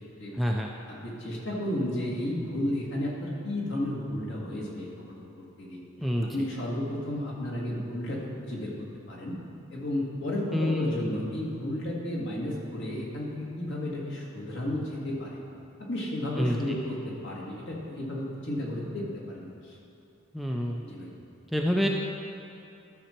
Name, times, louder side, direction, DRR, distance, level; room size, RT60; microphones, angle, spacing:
voice 1, 0.3-0.7 6.0-6.3 10.5-10.9 16.4-16.8 20.3-20.8 21.5-21.9, equal, ahead, -1 dB, 0.4 m, -27 dB
voice 2, 0.9-5.8 6.3-8.7 9.1-9.3 9.7-15.4 15.9-19.7 20.8-21.1, left 1 dB, 55° left, -4 dB, 1.9 m, -33 dB
13.0 x 6.3 x 4.4 m, 2.9 s
head